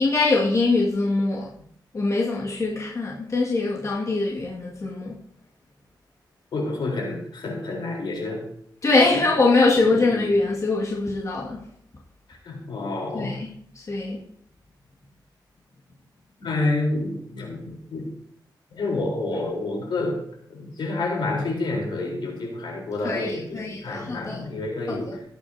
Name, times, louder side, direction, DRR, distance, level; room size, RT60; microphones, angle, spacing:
voice 1, 0.0-1.5 1.9-5.2 8.8-11.7 13.1-14.2 23.0-24.5, left 3 dB, 40° left, 2.2 m, -23 dB
voice 2, 6.5-8.5 9.1-9.2 10.0-10.2 12.3-13.4 16.4-18.1 18.7-20.2 20.5-25.2, left 2 dB, 80° left, 4.2 m, -29 dB
18.5 x 8.9 x 2.9 m
wide cardioid pair, 130°, 8 cm